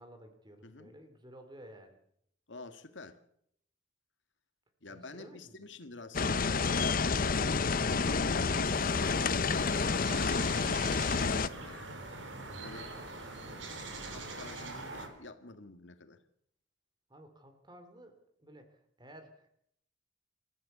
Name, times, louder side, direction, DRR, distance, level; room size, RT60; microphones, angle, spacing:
voice 1, 0.0-2.0 4.9-5.6 17.1-19.6, right 1 dB, 25° right, 7 dB, 3.4 m, -54 dB
voice 2, 2.5-3.2 4.8-12.0 12.6-12.9 13.5-16.2, left 2 dB, 75° left, 9 dB, 1.9 m, -48 dB
sound 1, 6.1-11.5, left 4 dB, 50° left, 0.8 m, -29 dB
sound 2, 8.7-15.1, right 2 dB, 85° right, 4.3 m, -43 dB
28.0 x 14.0 x 7.0 m, 0.70 s
head